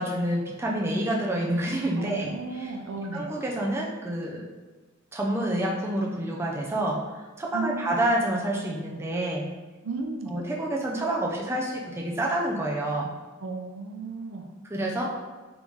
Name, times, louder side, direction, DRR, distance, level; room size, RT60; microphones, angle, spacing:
voice 1, 0.0-2.7 3.1-4.5 5.1-7.0 7.4-9.5 10.3-13.1 14.6-15.2, right 1 dB, 10° right, -2 dB, 0.4 m, -28 dB
voice 2, 2.0-3.3 7.5-8.1 9.8-10.4 13.4-14.5, right 3 dB, 75° right, 3 dB, 0.5 m, -34 dB
3.9 x 3.5 x 3.1 m, 1.2 s
head